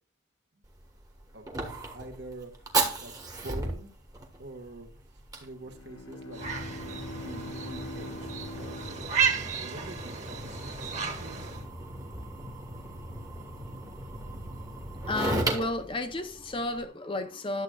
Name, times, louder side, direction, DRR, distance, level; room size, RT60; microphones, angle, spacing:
Fire, 0.6-16.8, right 2 dB, 15° right, 1.3 m, -36 dB
voice 1, 1.9-2.7 3.0-3.1 3.4-3.9 4.4-6.4 6.7-9.1 9.5-11.5, right 2 dB, 55° right, 1.5 m, -46 dB
Bowed string instrument, 5.5-9.9, left 1 dB, 80° left, 0.8 m, -43 dB
sound 1, 6.3-11.6, right 6 dB, 35° right, 1.7 m, -33 dB
voice 2, 15.1-17.6, left 2 dB, 25° left, 0.6 m, -32 dB
11.0 x 7.7 x 2.3 m
head